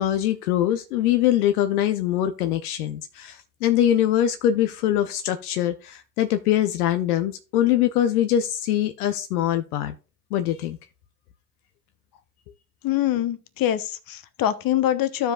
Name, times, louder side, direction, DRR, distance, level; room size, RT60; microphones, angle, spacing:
voice 1, 0.0-9.9 10.3-10.8, left 11 dB, 85° left, 0.6 m, -23 dB
voice 2, 12.8-15.3, left 12 dB, 50° left, 1.0 m, -24 dB
14.5 x 5.1 x 2.4 m
hypercardioid pair, 65°, 44 cm